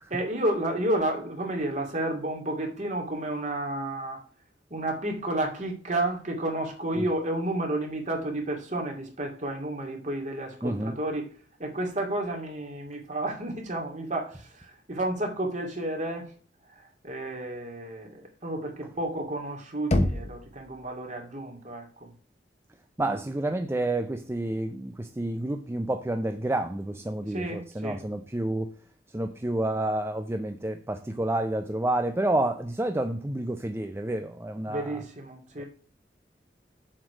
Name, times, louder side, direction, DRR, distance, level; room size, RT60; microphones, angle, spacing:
voice 1, 0.1-4.2 4.7-11.3 11.6-16.3 16.8-22.1 27.3-28.0 34.7-35.6, right 1 dB, 45° right, 2.5 m, -31 dB
voice 2, 10.6-11.0 23.0-28.8 29.1-35.0 35.6-35.7, right 1 dB, 15° right, 0.5 m, -29 dB
Knock, 19.9-20.8, left 1 dB, 40° left, 1.0 m, -26 dB
7.4 x 5.0 x 6.2 m
head